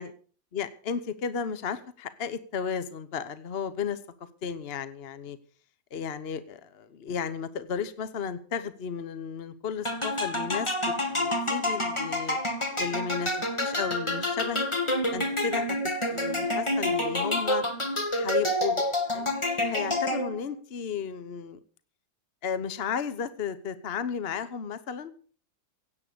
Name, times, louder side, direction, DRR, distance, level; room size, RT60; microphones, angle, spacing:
voice 1, 0.5-4.0 4.4-5.4 5.9-12.4 12.8-13.3 13.6-14.7 15.1-17.6 18.1-18.8 19.1-19.3 19.6-21.6 22.4-25.1, left 6 dB, 50° left, 13 dB, 0.7 m, -34 dB
sound 1, 9.8-20.5, left 1 dB, 15° left, 1.9 m, -28 dB
17.0 x 8.6 x 6.7 m, 0.43 s
omnidirectional pair, 2.2 m